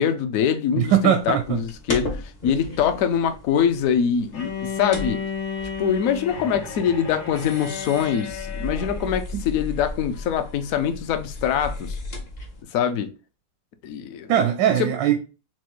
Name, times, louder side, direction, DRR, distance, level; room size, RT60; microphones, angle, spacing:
voice 1, 0.0-5.2 5.8-12.0 12.7-13.1 13.8-14.3 14.8-14.9, left 8 dB, 70° left, 0.8 m, -24 dB
voice 2, 0.8-1.6 9.3-9.4 14.3-15.2, right 9 dB, 80° right, 1.2 m, -20 dB
sound 1, 1.2-12.6, left 2 dB, 45° left, 0.5 m, -36 dB
Bowed string instrument, 4.3-9.2, left 6 dB, 85° left, 1.9 m, -33 dB
6.0 x 2.2 x 3.0 m
omnidirectional pair, 1.9 m